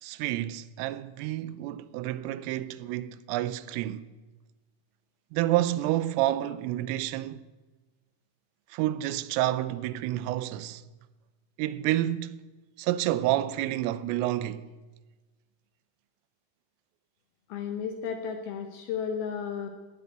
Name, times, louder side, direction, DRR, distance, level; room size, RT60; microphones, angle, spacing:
voice 1, 0.0-4.1 5.3-7.4 8.7-10.8 11.6-12.4 12.8-14.7, right 14 dB, 85° right, 3.2 m, -29 dB
voice 2, 17.5-19.7, left 7 dB, 80° left, 2.2 m, -33 dB
18.0 x 8.3 x 9.2 m
omnidirectional pair, 5.7 m